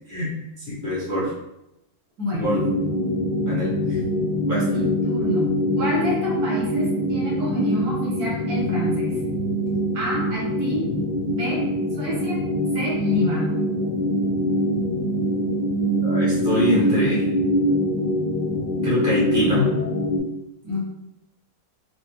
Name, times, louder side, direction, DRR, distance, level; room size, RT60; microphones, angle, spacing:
voice 1, 0.1-1.3 2.3-2.6 3.5-4.0 4.5-4.8 16.0-17.2 18.8-19.7, left 1 dB, 15° left, -8 dB, 0.9 m, -24 dB
voice 2, 2.2-2.5 4.7-9.1 9.9-10.9 11.2-11.6 11.9-12.4 12.7-13.6 20.6-20.8, left 1 dB, 60° right, -4 dB, 1.4 m, -28 dB
sound 1, 2.4-20.2, equal, 80° left, 0.4 m, -24 dB
4.2 x 2.2 x 2.9 m, 0.88 s
omnidirectional pair, 1.9 m